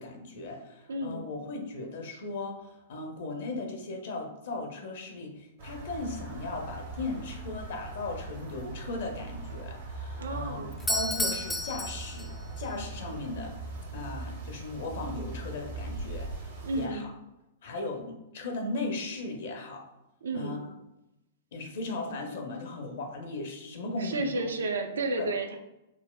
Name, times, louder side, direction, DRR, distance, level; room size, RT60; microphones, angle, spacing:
voice 1, 0.0-13.5 13.9-17.1 17.6-19.8 20.3-20.8 21.5-24.4 25.2-25.3, left 2 dB, 60° left, 2 dB, 0.5 m, -37 dB
voice 2, 0.9-1.2 10.2-10.7 16.6-17.1 20.2-20.7 24.0-25.6, right 2 dB, 70° right, 5 dB, 0.4 m, -32 dB
sound 1, 5.6-16.9, right 2 dB, 55° right, 0.7 m, -40 dB
Doorbell, 10.7-12.7, left 1 dB, 5° left, 0.3 m, -32 dB
3.9 x 2.0 x 2.2 m, 0.91 s
figure-of-eight pair, 105°, 0 cm